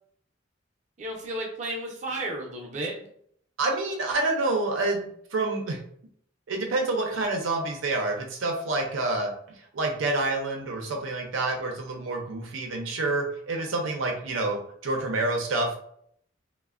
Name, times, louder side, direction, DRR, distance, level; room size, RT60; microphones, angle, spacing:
voice 1, 1.0-3.1, right 1 dB, 35° right, -3 dB, 0.6 m, -33 dB
voice 2, 3.6-5.0 5.3-5.8 6.5-9.3 9.7-15.8, right 2 dB, 80° right, 2 dB, 0.5 m, -28 dB
3.1 x 2.1 x 2.3 m, 0.65 s
head